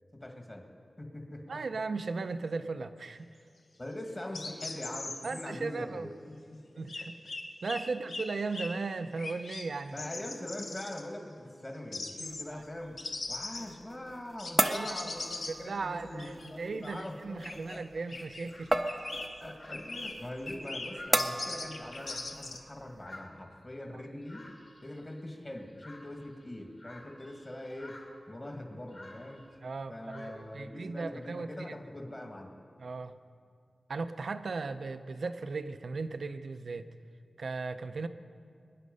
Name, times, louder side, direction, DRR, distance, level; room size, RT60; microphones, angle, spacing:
voice 1, 0.2-0.7 1.0-1.6 3.8-6.9 9.9-13.0 13.3-17.4 17.7-17.8 19.4-24.5 24.8-28.0 28.3-29.4 29.9-32.5, left 1 dB, 25° left, 2 dB, 2.1 m, -43 dB
voice 2, 1.5-3.3 5.2-6.1 6.8-7.2 7.6-10.1 12.5-12.6 14.6-15.0 15.5-19.0 29.6-31.5 32.8-33.1 33.9-36.9 37.4-38.1, right 4 dB, 70° right, 10 dB, 0.7 m, -37 dB
sound 1, 4.3-5.4 6.9-7.8 8.1-8.2 8.5-8.7 9.2-9.6 10.0-11.0 11.9-12.4 13.0-13.7 14.4-15.5 16.2-16.5 16.8-17.1 17.4-17.8 18.1-18.5 18.9-19.3 19.7-20.1 20.5-20.9 21.2-22.6, left 3 dB, 75° left, 1.4 m, -40 dB
sound 2, 12.2-23.1, right 1 dB, 20° right, 0.7 m, -36 dB
sound 3, 16.8-17.5 18.2-18.3 18.5-22.6 22.9-29.6 30.1-30.6, left 1 dB, 40° left, 2.6 m, -53 dB
23.0 x 10.5 x 5.5 m, 2.3 s
wide cardioid pair, 105°, 0 cm